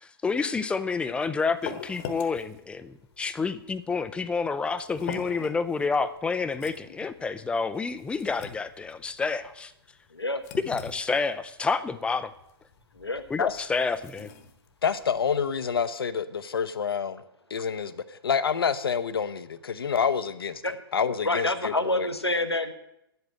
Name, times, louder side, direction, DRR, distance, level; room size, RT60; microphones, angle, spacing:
voice 1, 0.0-9.7 10.7-12.3 13.3-14.3, left 4 dB, 10° left, 12 dB, 0.5 m, -29 dB
sound 1, 0.9-15.9, left 7 dB, 40° left, 1.2 m, -44 dB
voice 2, 14.8-17.2 17.5-20.6 20.9-22.1, left 6 dB, 70° left, 12 dB, 0.8 m, -28 dB
voice 3, 21.2-22.7, left 2 dB, 90° left, 8 dB, 1.2 m, -27 dB
10.5 x 8.2 x 7.7 m, 0.82 s
figure-of-eight pair, 115°, 13 cm